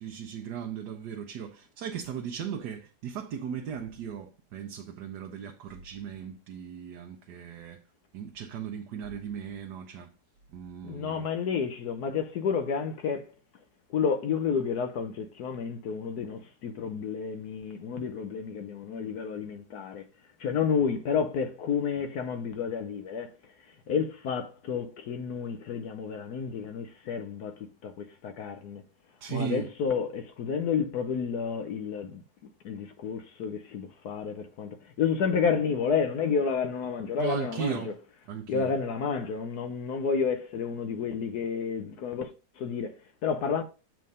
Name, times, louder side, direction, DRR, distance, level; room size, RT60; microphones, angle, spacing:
voice 1, 0.0-7.8 8.1-10.1 10.5-11.2 29.2-29.6 37.2-38.0 38.3-38.7, right 8 dB, 90° right, 1.3 m, -37 dB
voice 2, 10.8-13.3 13.9-20.1 20.4-23.3 23.7-28.8 29.3-32.2 32.6-37.9 38.5-42.3 42.6-43.6, left 6 dB, 75° left, 1.3 m, -30 dB
7.5 x 3.5 x 5.4 m
omnidirectional pair, 1.7 m